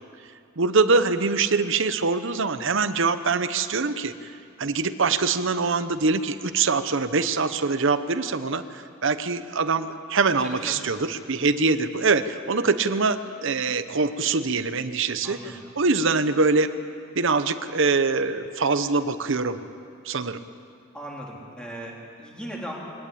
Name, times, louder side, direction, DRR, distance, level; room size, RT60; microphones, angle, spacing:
voice 1, 0.6-4.3 4.6-16.7 17.1-19.6 20.0-20.4, right 4 dB, 65° right, 12 dB, 0.9 m, -24 dB
voice 2, 10.4-10.7 15.2-15.5 20.9-22.8, right 1 dB, 5° left, -3 dB, 4.0 m, -38 dB
23.0 x 19.0 x 8.6 m, 2.4 s
head